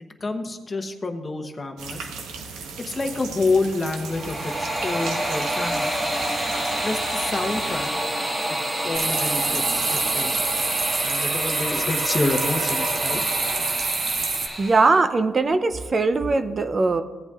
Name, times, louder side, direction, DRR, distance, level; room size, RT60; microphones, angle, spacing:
voice 1, 0.2-2.0 2.8-5.9 6.8-7.9 8.5-8.6 8.8-10.3 11.0-13.2, left 3 dB, 30° left, 6 dB, 0.9 m, -28 dB
sound 1, 1.8-7.9, right 4 dB, 85° right, 1.0 m, -37 dB
sound 2, 3.9-15.0, right 1 dB, 20° right, 1.5 m, -28 dB
sound 3, 8.9-14.5, right 4 dB, 55° right, 1.1 m, -26 dB
voice 2, 14.6-17.0, right 3 dB, 35° right, 9 dB, 0.5 m, -20 dB
16.0 x 8.0 x 2.4 m, 1.3 s
cardioid pair, 90°, 0 cm